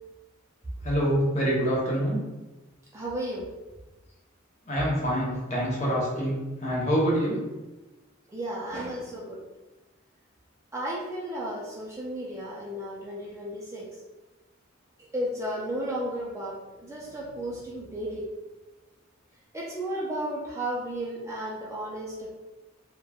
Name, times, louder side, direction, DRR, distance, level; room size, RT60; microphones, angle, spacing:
voice 1, 0.8-2.2 4.7-7.4, equal, 35° left, -5 dB, 0.7 m, -26 dB
voice 2, 2.9-3.5 8.3-9.4 10.7-13.9 15.1-18.3 19.5-22.3, right 1 dB, 15° right, -5 dB, 0.4 m, -33 dB
3.0 x 2.1 x 2.3 m, 1.1 s
head